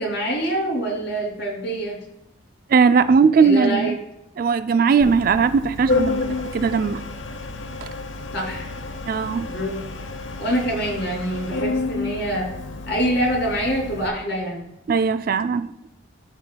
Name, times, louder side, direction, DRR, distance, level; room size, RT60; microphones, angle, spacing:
voice 1, 0.0-2.0 3.4-3.9 8.3-8.7 9.5-9.8 10.4-12.5 12.9-14.6, right 1 dB, 60° left, -1 dB, 2.8 m, -25 dB
voice 2, 2.7-4.0 4.4-7.0 7.8-7.9 9.1-9.5 14.9-15.9, right 5 dB, 50° right, 12 dB, 0.4 m, -19 dB
Organ, 5.0-14.1, left 3 dB, 80° left, 0.9 m, -30 dB
13.5 x 5.7 x 2.2 m, 0.84 s
head